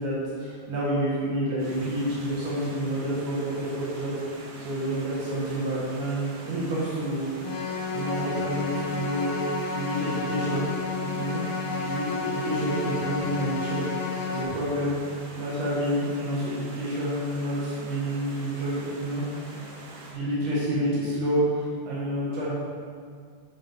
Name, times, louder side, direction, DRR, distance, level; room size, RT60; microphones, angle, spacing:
voice 1, 0.0-4.2 4.6-7.3 7.9-10.6 11.1-11.4 11.8-14.9 15.3-19.2 20.1-22.5, right 1 dB, 80° right, -8 dB, 3.4 m, -29 dB
Stream, 1.6-20.1, right 1 dB, 65° right, 2.7 m, -45 dB
sound 1, 7.4-14.4, left 4 dB, 80° left, 2.2 m, -31 dB
9.8 x 7.6 x 3.6 m, 2.1 s
omnidirectional pair, 3.6 m